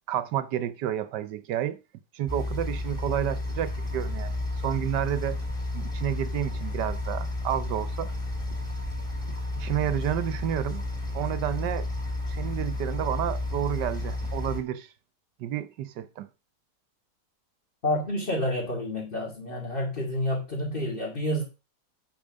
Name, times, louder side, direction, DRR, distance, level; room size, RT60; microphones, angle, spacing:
voice 1, 0.1-1.8 2.1-5.4 5.7-8.1 9.6-10.8 11.1-11.9 12.3-14.9 15.4-16.3, right 11 dB, 85° right, 1.4 m, -30 dB
sound 1, 2.3-14.6, left 2 dB, ahead, 3.1 m, -32 dB
voice 2, 17.8-21.4, left 1 dB, 30° left, 2.6 m, -29 dB
8.6 x 5.6 x 6.2 m
omnidirectional pair, 1.8 m